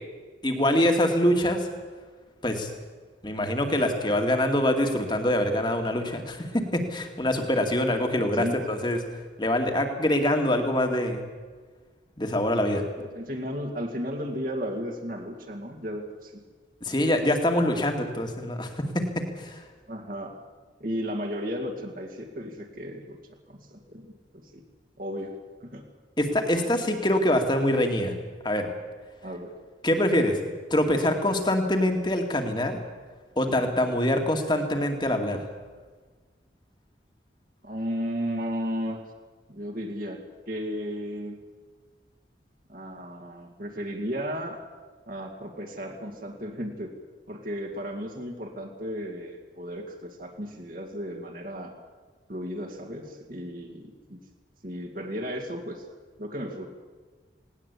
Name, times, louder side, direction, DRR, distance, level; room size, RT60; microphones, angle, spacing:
voice 1, 0.4-1.7 2.4-2.7 3.2-9.0 9.4-11.2 12.2-12.8 16.8-18.7 18.9-19.6 26.2-28.1 28.4-28.7 29.8-30.4 30.7-32.8 33.4-35.4, left 1 dB, 25° left, 4 dB, 2.3 m, -24 dB
voice 2, 8.2-8.6 13.0-16.4 19.9-20.3 20.8-23.2 23.5-24.6 25.0-25.8 29.2-29.5 37.6-39.0 39.5-41.4 42.7-44.6 45.1-46.9 47.3-51.7 52.3-54.2 54.6-55.8 56.2-56.7, equal, 50° right, 2 dB, 2.4 m, -34 dB
19.0 x 18.5 x 8.5 m, 1.4 s
head